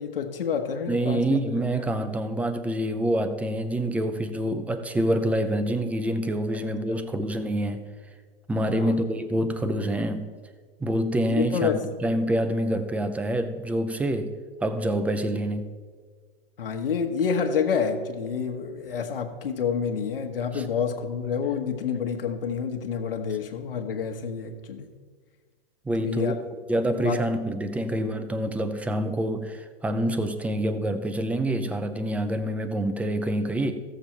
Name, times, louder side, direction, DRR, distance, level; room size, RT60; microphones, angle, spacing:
voice 1, 0.0-1.6 6.5-7.0 8.7-8.9 11.3-11.8 16.6-24.9 26.0-26.4 26.9-27.9, left 6 dB, 65° left, 4 dB, 1.2 m, -29 dB
voice 2, 0.9-7.9 8.5-10.3 10.8-11.7 12.0-14.3 14.6-15.7 20.5-20.6 25.9-26.3 26.7-33.7, right 1 dB, 5° right, 9 dB, 0.4 m, -26 dB
15.0 x 7.1 x 4.4 m, 1.5 s
figure-of-eight pair, 105°, 30 cm